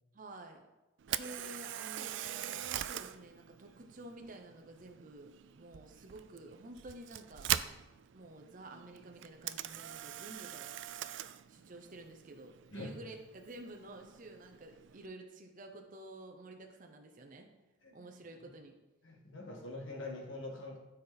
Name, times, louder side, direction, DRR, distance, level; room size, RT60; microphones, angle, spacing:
voice 1, 0.1-0.6 1.1-7.5 8.1-10.7 11.5-17.5 17.9-18.7, right 2 dB, 40° right, 3 dB, 0.7 m, -51 dB
Camera, 1.0-15.1, right 11 dB, 60° right, 0.3 m, -42 dB
voice 2, 19.0-20.8, left 2 dB, 65° left, -1 dB, 1.9 m, -44 dB
13.0 x 4.3 x 4.0 m, 1.1 s
head